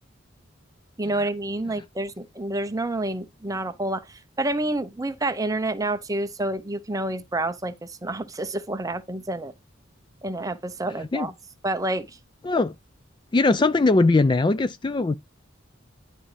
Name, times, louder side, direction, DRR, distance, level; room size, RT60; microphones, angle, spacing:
voice 1, 1.0-9.5 10.2-11.3 11.6-12.2, right 2 dB, 20° right, 0.7 m, -28 dB
voice 2, 11.0-11.3 12.4-12.7 13.3-15.1, left 3 dB, 25° left, 0.4 m, -20 dB
11.0 x 4.9 x 3.3 m
head